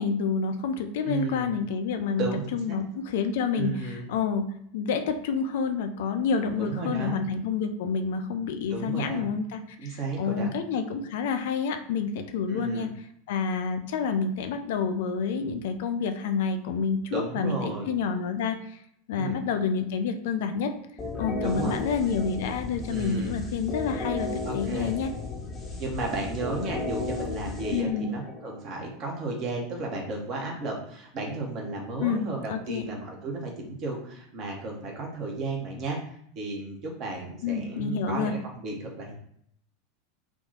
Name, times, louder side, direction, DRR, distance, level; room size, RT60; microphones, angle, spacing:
voice 1, 0.0-12.9 13.3-18.8 19.1-20.7 21.2-25.1 27.7-28.1 32.0-32.2 32.5-32.8 37.4-38.3, left 5 dB, 55° left, 7 dB, 0.4 m, -28 dB
voice 2, 1.0-1.5 2.2-2.8 3.5-4.0 6.6-7.2 8.7-9.3 9.8-10.5 12.5-12.9 17.1-17.9 19.2-19.4 21.4-21.7 22.9-23.4 24.4-24.9 25.8-39.1, right 2 dB, 40° right, 0 dB, 1.0 m, -33 dB
sound 1, 21.0-28.6, left 3 dB, 20° left, 0.9 m, -35 dB
3.6 x 2.3 x 3.9 m, 0.70 s
figure-of-eight pair, 85°, 0 cm